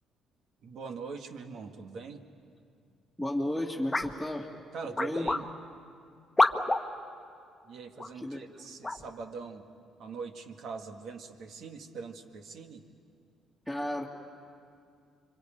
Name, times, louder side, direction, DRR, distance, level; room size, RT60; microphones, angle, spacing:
voice 1, 0.6-2.2 4.7-5.5 7.7-9.7 10.0-12.9, right 5 dB, 70° right, 5 dB, 1.9 m, -42 dB
voice 2, 3.2-4.5 5.0-5.3 8.1-8.8 13.7-14.0, left 1 dB, 5° right, -3 dB, 2.4 m, -33 dB
sound 1, 3.9-4.1 4.9-5.4 6.4-6.8 8.0-8.1 8.8-9.0, left 2 dB, 15° left, 1.3 m, -26 dB
27.0 x 24.0 x 8.9 m, 2.3 s
supercardioid pair, 70°, 0 cm